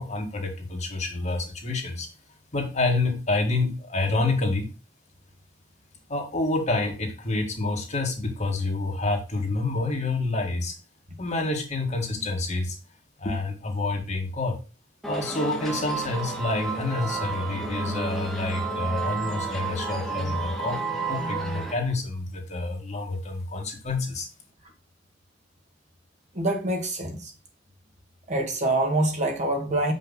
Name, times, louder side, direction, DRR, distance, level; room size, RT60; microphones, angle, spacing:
voice 1, 0.0-2.1 2.5-4.7 6.1-10.8 11.2-12.8 13.2-14.6 15.1-20.8 21.0-24.3, left 2 dB, 40° left, 2.0 m, -28 dB
sound 1, 15.0-21.7, right 3 dB, ahead, 1.8 m, -31 dB
voice 2, 26.3-27.3 28.3-29.9, right 2 dB, 40° right, 1.9 m, -25 dB
7.5 x 5.5 x 4.0 m
head